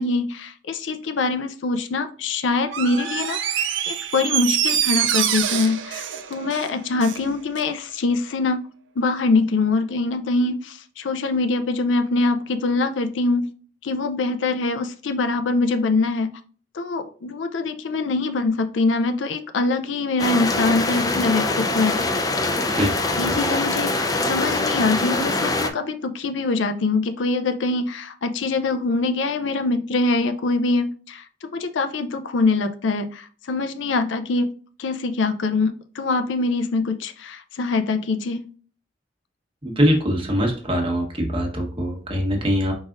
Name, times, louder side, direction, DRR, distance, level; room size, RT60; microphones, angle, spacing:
voice 1, 0.0-3.4 3.8-8.6 9.0-13.5 13.8-16.3 16.7-22.0 23.2-34.5 34.8-38.5, left 3 dB, 85° left, 8 dB, 0.5 m, -23 dB
Door, 2.7-7.3 7.6-7.7, right 10 dB, 85° right, 0.5 m, -25 dB
sound 1, 20.2-25.7, left 2 dB, 20° left, 0.5 m, -23 dB
voice 2, 39.6-42.7, equal, 30° right, 1 dB, 1.1 m, -22 dB
4.9 x 4.0 x 2.5 m, 0.41 s
head